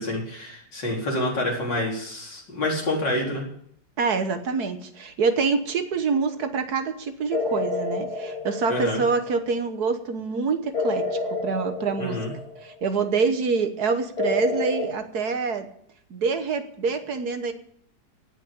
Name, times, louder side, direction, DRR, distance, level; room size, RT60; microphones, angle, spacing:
voice 1, 0.0-3.4 8.7-9.0 12.0-12.3, left 1 dB, 75° left, -3 dB, 5.0 m, -27 dB
voice 2, 4.0-12.2 12.6-15.7 16.1-17.5, right 5 dB, 60° right, 8 dB, 1.7 m, -26 dB
sound 1, 7.3-9.4 10.7-12.8 14.2-14.9, left 3 dB, 55° left, 2.6 m, -29 dB
17.5 x 6.4 x 8.6 m, 0.67 s
omnidirectional pair, 1.9 m